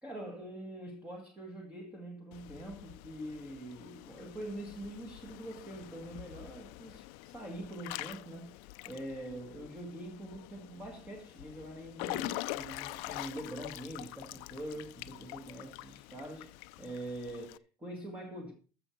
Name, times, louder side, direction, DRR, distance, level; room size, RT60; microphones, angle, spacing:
voice 1, 0.0-18.5, right 1 dB, 10° right, 2.1 m, -44 dB
Water / Splash splatter / Drip, 2.3-17.6, left 18 dB, 85° left, 0.5 m, -45 dB
14.5 x 6.3 x 4.6 m
cardioid pair, 165°, 11 cm